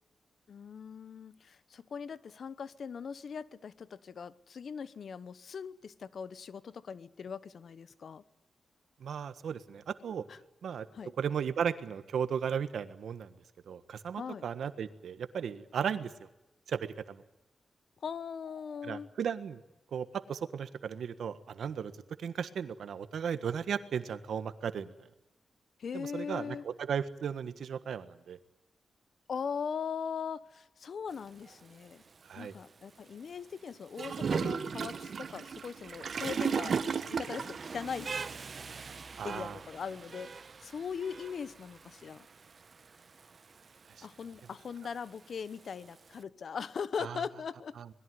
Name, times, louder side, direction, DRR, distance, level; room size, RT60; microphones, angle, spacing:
voice 1, 0.5-8.2 10.3-10.4 10.9-11.1 14.2-14.4 18.0-19.1 25.8-26.6 29.3-32.0 32.4-38.2 39.2-40.3 40.6-42.3 44.0-47.8, left 6 dB, 65° left, 16 dB, 1.0 m, -40 dB
voice 2, 9.0-10.2 10.6-10.9 11.2-13.3 13.7-16.3 16.7-17.2 18.8-19.6 19.9-21.9 22.2-24.9 25.9-28.4 32.3-32.5 39.2-39.6 44.0-44.1 47.0-47.2 47.8-47.9, right 7 dB, 85° right, 12 dB, 1.5 m, -35 dB
Rain, 31.1-46.2, right 5 dB, 50° right, 1.0 m, -49 dB
Gurgling / Toilet flush, 34.0-37.7, right 6 dB, 65° right, 1.4 m, -33 dB
26.0 x 21.0 x 9.5 m, 0.95 s
cardioid pair, 90°, 0 cm